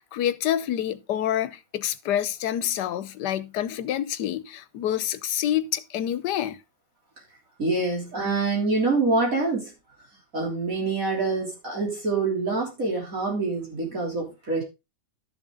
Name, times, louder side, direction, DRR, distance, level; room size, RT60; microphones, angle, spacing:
voice 1, 0.0-6.6, left 11 dB, 90° left, 1.3 m, -27 dB
voice 2, 7.6-9.7 10.3-14.6, right 3 dB, 55° right, 3.8 m, -26 dB
12.5 x 7.1 x 3.8 m
omnidirectional pair, 1.8 m